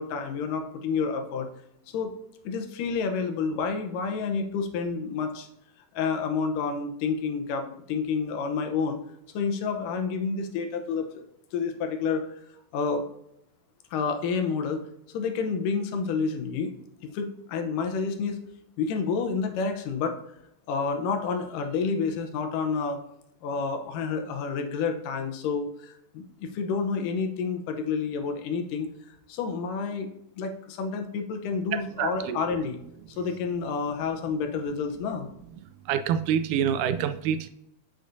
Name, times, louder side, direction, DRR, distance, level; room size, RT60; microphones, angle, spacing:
voice 1, 0.0-1.5 1.9-2.1 2.4-5.5 5.9-9.0 9.3-11.2 11.5-12.4 12.7-13.0 13.9-16.7 17.0-18.4 18.8-20.2 20.7-23.0 23.4-30.1 30.4-32.8 33.1-35.3, left 5 dB, 80° left, 5 dB, 2.5 m, -29 dB
voice 2, 32.0-32.4 35.9-37.5, right 8 dB, 80° right, 10 dB, 1.9 m, -26 dB
8.2 x 8.1 x 2.7 m, 0.78 s
omnidirectional pair, 3.8 m